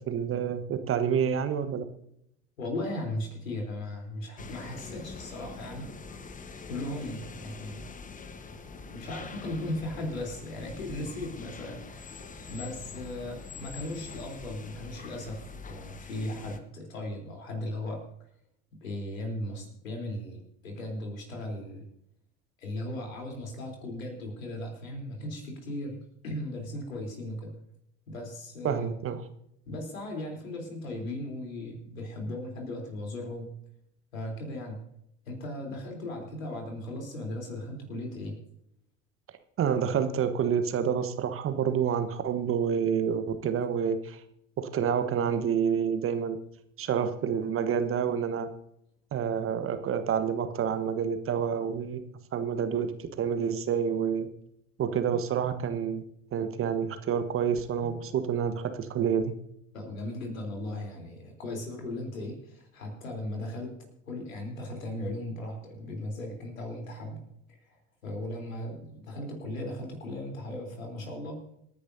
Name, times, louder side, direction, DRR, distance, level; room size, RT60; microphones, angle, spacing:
voice 1, 0.1-1.8 28.6-29.2 39.6-44.2 44.6-46.4 46.8-48.5 49.1-52.0 52.3-54.3 54.8-56.0 56.3-59.3, right 7 dB, 35° right, 9 dB, 1.2 m, -28 dB
voice 2, 2.6-5.9 6.7-7.9 8.9-12.2 12.5-18.0 18.8-21.9 22.6-26.0 26.2-27.5 28.1-28.9 29.7-33.6 34.1-34.8 35.3-38.4 57.8-58.1 59.7-63.7 64.1-67.2 67.7-67.8 68.0-71.4, left 1 dB, 75° left, 1 dB, 3.8 m, -37 dB
sound 1, 4.4-16.6, left 4 dB, 20° left, 1.2 m, -44 dB
26.5 x 10.0 x 2.7 m, 0.75 s
figure-of-eight pair, 75°, 40 cm